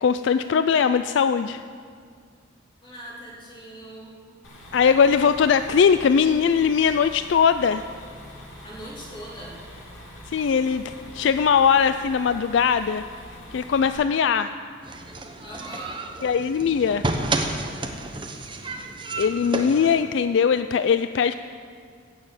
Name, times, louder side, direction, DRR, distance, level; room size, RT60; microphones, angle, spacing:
voice 1, 0.0-1.6 4.7-7.9 10.3-13.0 13.5-14.5 16.2-17.0 19.2-21.4, left 6 dB, 60° left, 11 dB, 0.3 m, -20 dB
voice 2, 2.8-4.2 8.6-9.6 15.4-16.0, right 1 dB, 25° left, -4 dB, 2.9 m, -40 dB
sound 1, 4.4-13.9, equal, 80° left, 2.8 m, -44 dB
sound 2, 14.8-20.0, right 2 dB, 25° right, 0.9 m, -31 dB
16.5 x 6.9 x 7.9 m, 2.1 s
head